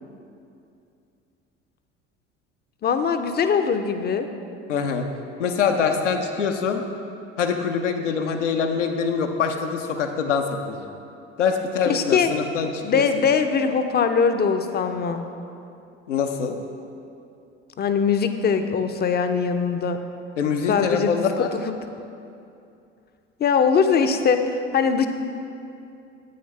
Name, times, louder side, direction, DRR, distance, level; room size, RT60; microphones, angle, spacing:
voice 1, 2.8-4.3 11.9-12.3 12.8-15.2 17.8-20.0 20.7-21.3 21.5-21.7 23.4-25.1, left 6 dB, 30° left, 8 dB, 0.6 m, -21 dB
voice 2, 4.7-5.1 5.4-6.8 7.4-10.8 11.4-13.0 16.1-16.5 20.4-21.5, left 6 dB, 80° left, 4 dB, 0.7 m, -24 dB
9.5 x 8.5 x 3.2 m, 2.6 s
figure-of-eight pair, 65°, 35 cm